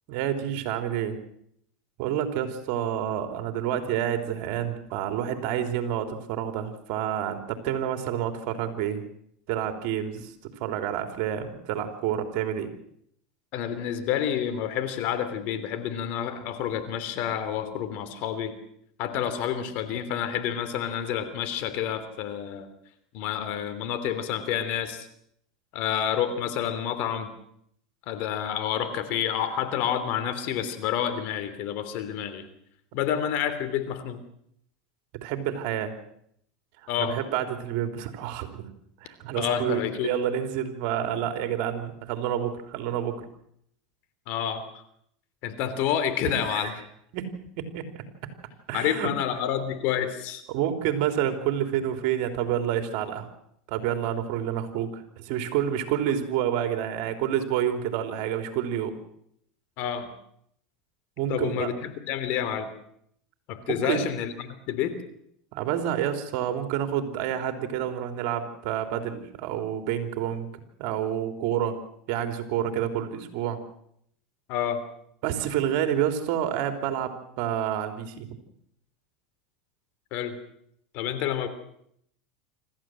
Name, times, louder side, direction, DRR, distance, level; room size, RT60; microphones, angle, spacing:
voice 1, 0.1-1.2 2.0-9.0 9.5-12.7 35.2-35.9 37.0-38.7 39.0-43.2 46.5-46.8 47.1-47.9 48.7-49.1 50.5-53.3 53.7-59.0 61.2-61.7 63.7-64.0 65.5-70.5 70.8-71.8 72.1-73.6 75.2-78.3, right 10 dB, 60° right, 7 dB, 3.3 m, -28 dB
voice 2, 13.5-18.5 19.0-22.7 23.1-25.1 25.7-27.3 28.1-32.4 32.9-34.2 36.9-37.2 39.3-40.1 44.3-44.7 45.4-46.7 48.7-50.4 59.8-60.1 61.3-62.7 63.5-64.9 74.5-74.8 80.1-80.4 80.9-81.5, left 9 dB, 55° left, 10 dB, 3.2 m, -29 dB
26.5 x 14.0 x 7.7 m, 0.71 s
supercardioid pair, 110°, 3 cm